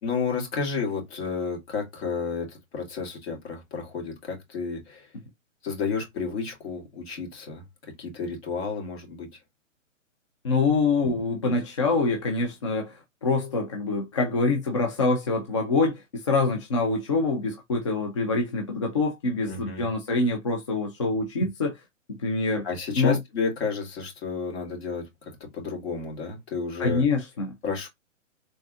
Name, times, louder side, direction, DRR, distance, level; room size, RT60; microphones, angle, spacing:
voice 1, 0.0-5.1 5.6-7.6 8.0-9.4 19.5-19.9 22.6-27.1 27.6-27.9, left 5 dB, 50° left, 2.5 m, -31 dB
voice 2, 10.4-21.7 22.1-22.7 23.0-23.2 26.8-27.5, left 3 dB, 25° left, 0.4 m, -25 dB
3.7 x 3.6 x 2.4 m
hypercardioid pair, 140°, 39 cm